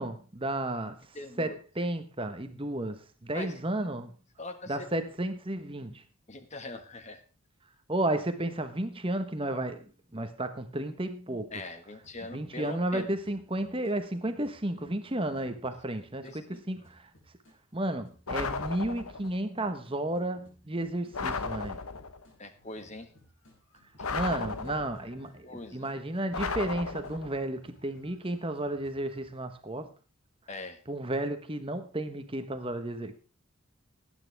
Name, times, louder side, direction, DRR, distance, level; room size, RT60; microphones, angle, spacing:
voice 1, 0.0-1.0 1.4-4.1 4.7-6.0 7.9-9.8 10.1-11.5 12.3-17.0 17.7-21.8 24.1-29.9 30.9-33.2, right 1 dB, 25° right, 1.1 m, -33 dB
voice 2, 1.1-1.6 3.3-3.6 4.4-4.9 6.3-7.2 11.5-13.1 16.2-16.7 22.4-23.1 25.4-25.9 30.5-30.8, left 2 dB, 30° left, 1.6 m, -42 dB
sound 1, 12.0-12.8 13.1-17.6 18.0-29.2, equal, 60° left, 6.4 m, -61 dB
sound 2, 18.3-19.3 21.1-22.2 24.0-25.2 26.3-27.4, left 4 dB, 85° left, 1.1 m, -35 dB
18.5 x 9.3 x 3.5 m
head